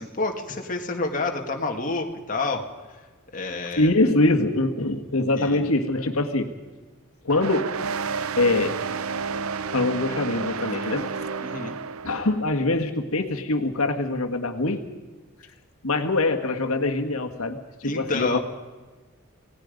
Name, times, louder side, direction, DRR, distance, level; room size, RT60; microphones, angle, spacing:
voice 1, 0.0-2.6 3.3-3.9 5.4-5.6 11.4-11.8 17.8-18.4, left 3 dB, 40° left, 2 dB, 1.9 m, -28 dB
voice 2, 3.8-6.5 7.2-7.7 8.0-8.8 9.3-9.5 9.7-11.1 12.0-14.8 15.8-18.4, left 2 dB, 85° left, 5 dB, 1.7 m, -24 dB
sound 1, 7.3-12.4, right 5 dB, 80° right, 0.7 m, -31 dB
27.5 x 18.0 x 5.2 m, 1.3 s
head